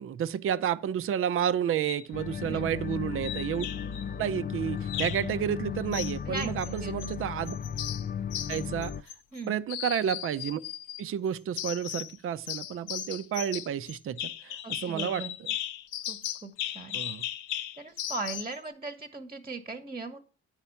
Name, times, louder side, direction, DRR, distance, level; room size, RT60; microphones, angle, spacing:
voice 1, 0.0-3.7 4.2-7.6 8.5-8.9 9.5-10.6 11.0-15.5 16.9-17.2, right 9 dB, 45° right, 0.5 m, -31 dB
sound 1, 1.7-2.1 3.2-4.0 4.9-5.3 5.9-7.1 7.5-9.4 9.7-11.0 11.6-12.2 12.5-18.6, left 12 dB, 90° left, 0.7 m, -37 dB
sound 2, 2.1-9.0, left 7 dB, 30° left, 0.4 m, -35 dB
voice 2, 2.3-2.8 6.3-7.2 9.3-9.6 14.6-15.4 16.1-17.0 17.8-20.2, right 3 dB, 15° right, 1.0 m, -39 dB
9.6 x 4.3 x 7.0 m
cardioid pair, 90°, 30 cm